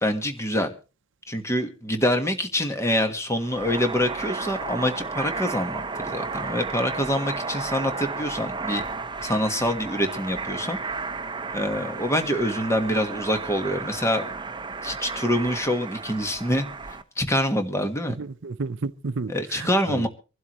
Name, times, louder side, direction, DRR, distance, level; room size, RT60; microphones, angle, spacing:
voice 1, 0.0-0.7 1.3-8.8 9.2-10.8 11.5-14.2 14.8-16.6 17.2-18.2 19.3-20.1, equal, 15° left, 1.4 m, -25 dB
sound 1, 3.4-17.0, right 4 dB, 20° right, 0.7 m, -33 dB
voice 2, 18.2-20.1, right 3 dB, 55° right, 0.6 m, -32 dB
25.0 x 12.0 x 3.1 m
head